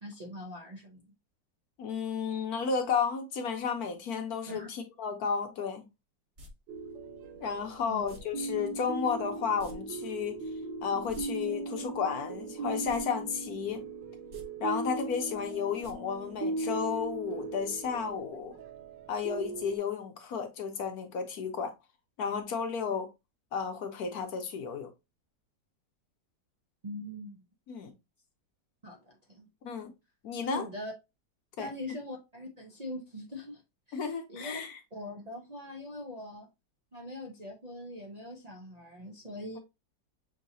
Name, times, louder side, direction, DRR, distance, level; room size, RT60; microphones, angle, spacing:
voice 1, 0.0-1.1 4.5-4.7 7.8-8.0 26.8-27.4 28.8-29.5 30.4-30.9 31.6-33.6 33.9-34.6 34.9-36.5 36.9-39.6, left 1 dB, 65° right, 0.3 m, -42 dB
voice 2, 1.8-5.8 7.4-10.4 10.8-13.8 14.6-18.5 19.1-21.7 22.2-23.1 23.5-24.9 27.7-27.9 29.6-29.9 30.2-30.7 31.6-31.7 33.9-34.8, left 6 dB, 65° left, 1.2 m, -33 dB
sound 1, 6.4-6.5 8.1-8.2 9.6-9.8 10.0-10.1 10.9-11.2 12.8-13.0 13.4-13.5 14.2-14.4 15.8-15.9 16.3-16.4, left 2 dB, 45° right, 1.3 m, -48 dB
sound 2, 6.7-19.8, right 3 dB, 85° right, 1.4 m, -38 dB
6.3 x 2.9 x 2.6 m
omnidirectional pair, 1.9 m